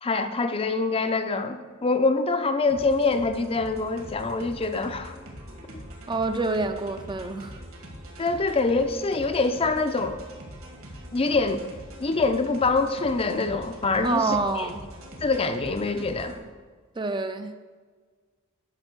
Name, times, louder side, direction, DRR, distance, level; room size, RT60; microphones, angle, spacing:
voice 1, 0.0-5.1 8.2-10.2 11.1-11.6 12.0-14.7 15.2-16.4, left 3 dB, 25° left, 8 dB, 0.5 m, -25 dB
sound 1, 2.7-16.4, equal, 65° right, 2.1 m, -43 dB
voice 2, 6.1-7.6 8.2-8.3 14.0-14.8 17.0-17.5, right 3 dB, 20° right, 8 dB, 0.5 m, -27 dB
10.5 x 5.3 x 6.6 m, 1.5 s
head